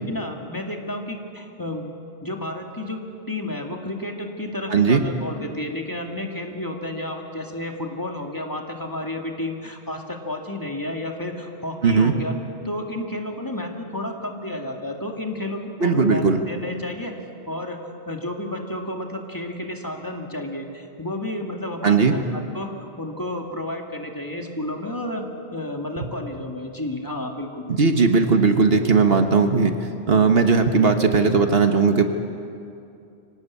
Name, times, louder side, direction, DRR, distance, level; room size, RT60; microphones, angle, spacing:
voice 1, 0.1-1.9 2.2-3.0 3.3-12.3 12.6-17.2 17.5-17.8 18.1-25.3 25.5-27.6, left 1 dB, 20° left, 1 dB, 2.1 m, -31 dB
voice 2, 4.7-5.0 11.8-12.1 15.8-16.4 21.8-22.1 27.8-29.7 30.1-32.1, right 4 dB, 65° right, 6 dB, 1.5 m, -17 dB
25.0 x 18.0 x 8.4 m, 2.6 s
omnidirectional pair, 1.1 m